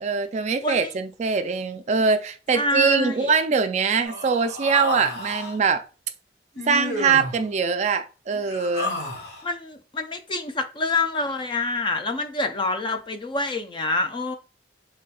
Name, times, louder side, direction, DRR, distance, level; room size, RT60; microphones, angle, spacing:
voice 1, 0.0-5.8 6.7-9.0, right 5 dB, 40° right, 0.3 m, -23 dB
voice 2, 0.6-0.9 2.5-3.3 9.4-14.3, left 2 dB, 25° left, 0.4 m, -26 dB
Human voice, 4.0-5.6 6.6-7.4 8.3-9.5, left 2 dB, 65° left, 1.7 m, -31 dB
4.1 x 3.2 x 2.3 m
head